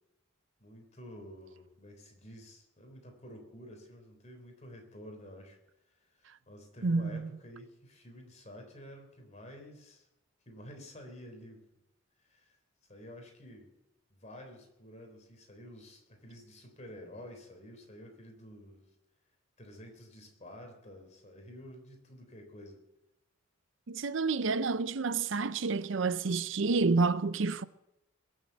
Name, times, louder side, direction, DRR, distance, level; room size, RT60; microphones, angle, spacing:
voice 1, 0.6-5.6 5.9-10.1 10.5-11.7 12.2-12.6 12.9-13.7 14.1-18.8 19.6-22.8, equal, 35° left, 3.7 m, -50 dB
voice 2, 6.8-7.3 23.9-27.6, right 4 dB, 65° right, 0.6 m, -29 dB
21.0 x 7.5 x 7.8 m
head